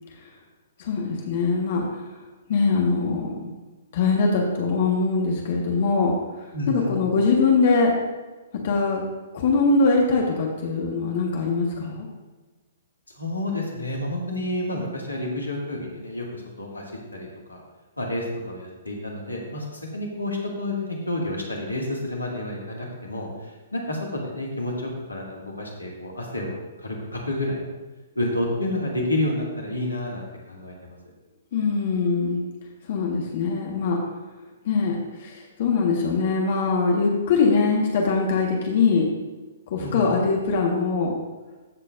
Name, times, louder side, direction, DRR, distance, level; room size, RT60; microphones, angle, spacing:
voice 1, 0.8-2.1 2.5-3.5 3.9-7.9 8.6-9.0 9.3-12.1 31.5-32.5 32.9-34.0 34.6-39.1 39.7-41.1, left 4 dB, 45° left, -1 dB, 1.5 m, -22 dB
voice 2, 6.5-6.9 13.2-16.8 17.1-17.6 18.0-27.6 28.2-31.0 39.8-40.1, left 1 dB, 80° left, -1 dB, 2.2 m, -30 dB
15.0 x 6.6 x 2.6 m, 1.2 s
figure-of-eight pair, 120°, 0 cm